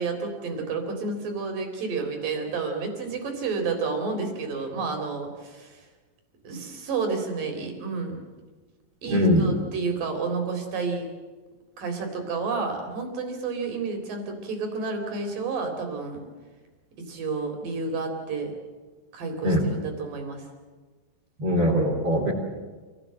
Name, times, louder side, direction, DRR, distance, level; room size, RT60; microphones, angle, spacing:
voice 1, 0.0-5.9 6.4-8.2 9.0-11.1 11.8-16.2 17.0-18.5 19.1-20.5, right 4 dB, 65° right, 4 dB, 5.3 m, -30 dB
voice 2, 9.1-9.5 19.4-19.7 21.4-22.3, equal, 40° right, -4 dB, 4.5 m, -21 dB
28.0 x 17.5 x 7.8 m, 1.4 s
omnidirectional pair, 4.3 m